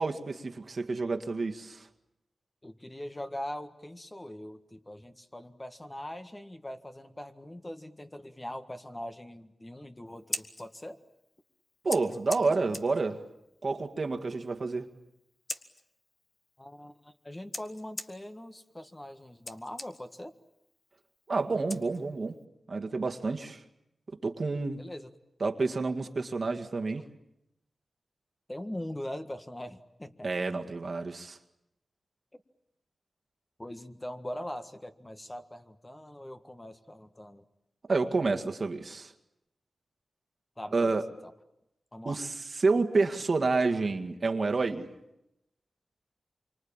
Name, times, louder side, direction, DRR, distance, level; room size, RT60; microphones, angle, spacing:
voice 1, 0.0-1.9 11.8-13.2 13.6-14.9 21.3-22.4 22.7-23.6 24.2-24.8 25.4-27.1 30.2-31.4 37.9-39.1 40.7-41.0 42.1-44.9, right 3 dB, 55° right, 4 dB, 1.9 m, -29 dB
voice 2, 2.6-11.0 12.5-12.6 16.6-20.3 24.8-25.1 28.5-30.3 33.6-37.4 40.6-41.3 41.9-42.2, left 1 dB, 20° left, 7 dB, 1.7 m, -42 dB
Scissors, 10.1-22.4, left 2 dB, 40° left, 1.6 m, -45 dB
26.5 x 24.5 x 8.9 m, 0.86 s
cardioid pair, 65°, 0 cm